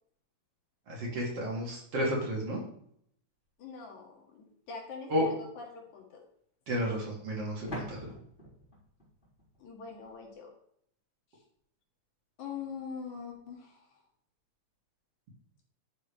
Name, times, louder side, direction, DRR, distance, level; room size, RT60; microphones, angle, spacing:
voice 1, 0.9-2.6 5.1-5.3 6.7-8.1, equal, 55° right, -3 dB, 3.8 m, -32 dB
voice 2, 3.6-6.2 9.6-10.5 12.4-14.0, left 5 dB, 80° left, 0 dB, 3.5 m, -43 dB
sound 1, 4.7-4.8 7.7-10.3, equal, 20° left, 4.2 m, -44 dB
12.0 x 7.5 x 3.3 m, 0.67 s
omnidirectional pair, 3.3 m